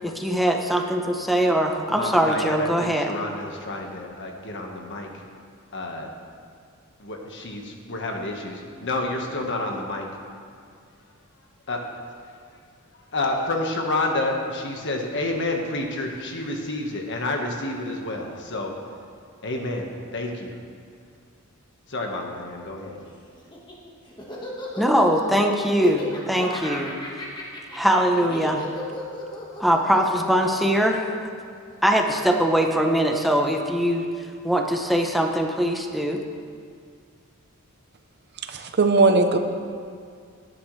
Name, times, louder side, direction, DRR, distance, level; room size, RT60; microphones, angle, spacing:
voice 1, 0.0-3.2 24.8-26.9 27.7-28.6 29.6-31.1 31.8-34.0 34.4-36.2, equal, ahead, 1 dB, 0.9 m, -22 dB
voice 2, 1.9-5.2 5.7-6.1 7.0-10.1 11.7-11.8 13.1-18.7 19.4-20.6 21.9-23.0, left 2 dB, 60° left, 1 dB, 1.6 m, -29 dB
Laughter, 23.4-31.8, equal, 20° left, 1.7 m, -36 dB
voice 3, 38.4-39.4, right 3 dB, 50° right, 6 dB, 0.8 m, -19 dB
18.0 x 10.5 x 3.3 m, 2.2 s
head